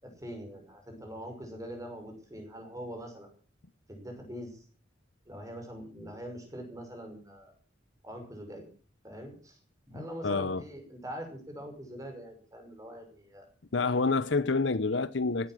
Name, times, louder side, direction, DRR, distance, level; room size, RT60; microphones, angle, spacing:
voice 1, 0.0-3.3 3.9-4.6 5.3-7.5 8.0-8.7 9.0-9.6 9.9-13.5, equal, 15° right, 5.8 m, -43 dB
voice 2, 9.9-10.6 13.7-15.5, left 3 dB, 65° left, 0.9 m, -28 dB
16.5 x 11.5 x 7.6 m
head